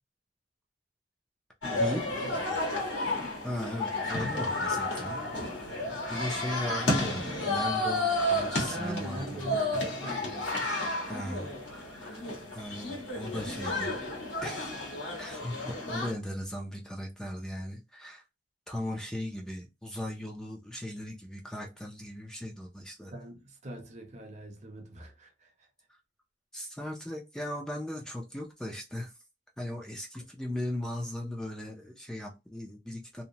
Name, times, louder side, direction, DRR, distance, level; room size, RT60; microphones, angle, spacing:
sound 1, 1.6-16.1, left 1 dB, 85° left, 1.4 m, -32 dB
voice 1, 1.6-2.9 5.9-6.3 8.7-10.5 23.1-25.3, right 1 dB, 40° right, 0.7 m, -42 dB
voice 2, 3.4-5.8 6.1-9.8 11.1-12.2 12.5-14.0 14.4-14.7 15.2-18.2 18.7-23.1 26.5-29.1 29.6-33.2, left 1 dB, 5° left, 0.4 m, -38 dB
2.8 x 2.0 x 2.7 m
head